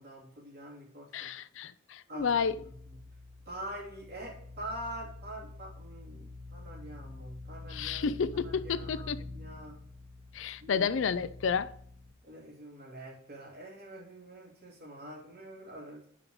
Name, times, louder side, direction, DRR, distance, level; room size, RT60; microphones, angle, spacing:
voice 1, 0.0-1.3 2.1-2.3 2.6-2.7 3.5-8.1 8.4-9.8 10.6-10.9 12.2-16.1, right 1 dB, 50° right, 3.1 m, -45 dB
voice 2, 1.1-2.6 7.7-9.2 10.3-11.7, left 6 dB, 65° left, 0.4 m, -31 dB
sound 1, 2.2-12.1, left 2 dB, 20° right, 1.4 m, -47 dB
9.9 x 5.2 x 3.1 m
head